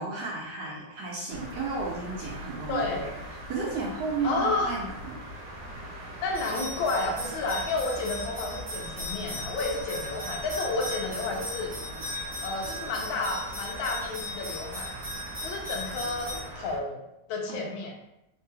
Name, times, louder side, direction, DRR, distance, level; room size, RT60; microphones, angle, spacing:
voice 1, 0.0-2.8 3.5-5.2 17.5-17.7, right 3 dB, 70° right, -3 dB, 1.0 m, -33 dB
sound 1, 1.3-16.8, right 1 dB, 85° right, 1.4 m, -42 dB
voice 2, 2.7-3.1 4.2-4.7 6.2-11.7 12.4-14.9 15.4-17.0 17.3-17.9, left 3 dB, 80° left, 0 dB, 1.4 m, -31 dB
sound 2, 6.3-16.4, left 1 dB, 30° right, 0.5 m, -38 dB
3.6 x 2.8 x 2.3 m, 0.86 s
omnidirectional pair, 2.1 m